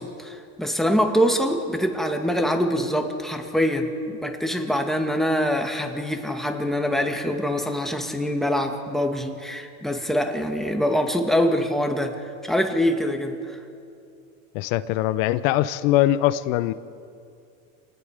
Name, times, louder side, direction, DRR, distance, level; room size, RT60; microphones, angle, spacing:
voice 1, 0.0-13.6, equal, ahead, 3 dB, 2.2 m, -24 dB
voice 2, 14.5-16.7, left 14 dB, 65° left, 14 dB, 0.9 m, -22 dB
28.5 x 19.0 x 5.1 m, 2.5 s
supercardioid pair, 105°, 42 cm